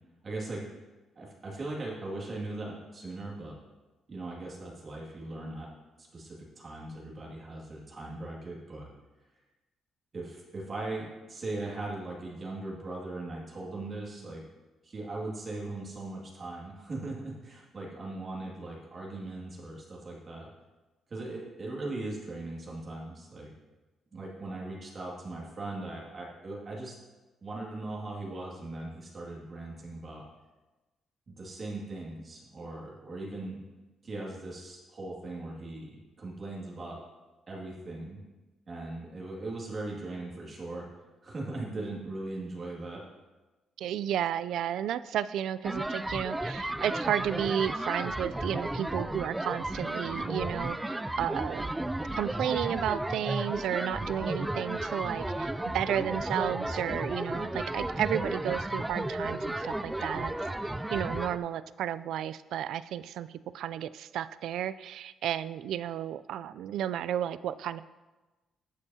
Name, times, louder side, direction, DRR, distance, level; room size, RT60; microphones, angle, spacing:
voice 1, 0.2-0.7 1.2-3.6 4.1-5.7 6.0-8.9 10.1-14.4 14.8-20.5 21.1-23.5 24.1-27.0 27.4-30.2 31.3-33.6 34.0-37.0 37.5-38.2 38.7-40.9 41.2-43.0, right 2 dB, 40° right, -3 dB, 2.2 m, -39 dB
voice 2, 43.8-51.7 52.2-67.8, right 10 dB, 80° right, 16 dB, 0.3 m, -33 dB
sound 1, 45.6-61.4, right 1 dB, 10° right, 0.4 m, -33 dB
12.5 x 8.2 x 2.8 m, 1.2 s
cardioid pair, 90°, 0 cm